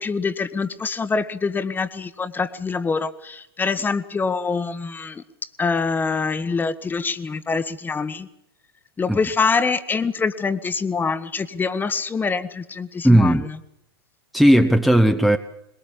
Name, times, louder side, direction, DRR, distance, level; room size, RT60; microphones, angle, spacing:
voice 1, 0.0-5.2 5.6-8.3 9.0-13.6, left 4 dB, 15° left, 14 dB, 1.4 m, -25 dB
voice 2, 13.0-13.4 14.3-15.4, right 1 dB, ahead, 5 dB, 1.1 m, -15 dB
22.0 x 21.5 x 7.4 m, 0.82 s
figure-of-eight pair, 100°, 13 cm